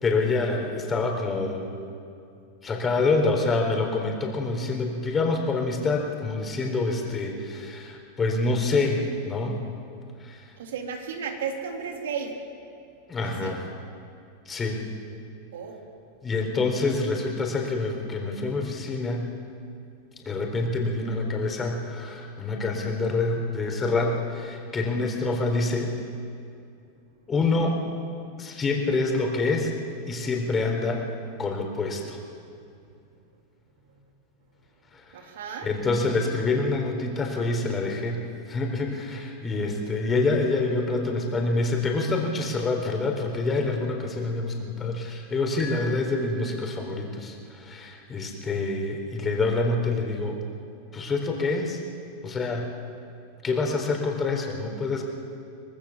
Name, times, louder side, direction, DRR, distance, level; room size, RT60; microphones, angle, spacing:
voice 1, 0.0-1.9 2.6-9.6 10.2-10.5 13.1-13.6 14.5-14.8 16.2-19.3 20.2-25.9 27.3-27.8 28.4-29.7 30.1-31.1 31.4-32.2 34.9-35.2 35.6-50.4 50.9-51.8 52.2-52.7 53.4-55.0, left 3 dB, 20° left, 2 dB, 4.1 m, -26 dB
voice 2, 10.6-12.3 13.2-13.5 15.5-15.8 35.1-35.7, right 6 dB, 90° right, 3 dB, 3.3 m, -34 dB
sound 1, 45.6-47.2, left 3 dB, 5° left, 5.0 m, -42 dB
24.5 x 19.0 x 7.4 m, 2.5 s
supercardioid pair, 135°, 0 cm